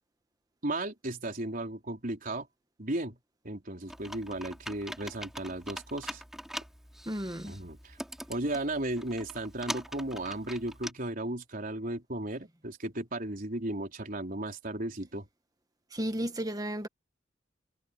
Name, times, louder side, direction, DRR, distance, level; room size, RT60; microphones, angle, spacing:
voice 1, 0.6-2.5 2.8-3.2 3.4-6.2 7.5-8.0 8.3-15.3, right 1 dB, 45° right, 4.3 m, -35 dB
Computer keyboard, 3.9-10.9, equal, ahead, 6.0 m, -43 dB
voice 2, 7.1-7.6 15.9-16.9, right 1 dB, 20° right, 1.7 m, -33 dB
head